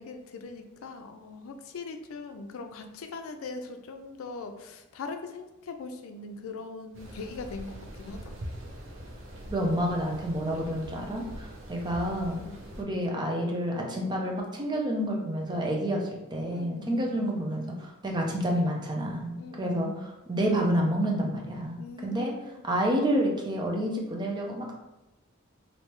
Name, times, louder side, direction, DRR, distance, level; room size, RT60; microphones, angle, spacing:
voice 1, 0.0-8.4 12.4-12.6 15.9-16.1 16.5-17.3 19.4-20.1 21.8-22.6, left 3 dB, 85° left, 6 dB, 0.4 m, -41 dB
sound 1, 6.9-12.8, equal, 65° right, 0.7 m, -43 dB
voice 2, 9.5-12.4 12.8-16.0 16.3-19.9 20.3-22.3 22.6-24.8, equal, 20° right, -1 dB, 0.5 m, -29 dB
3.2 x 2.7 x 3.0 m, 0.94 s
head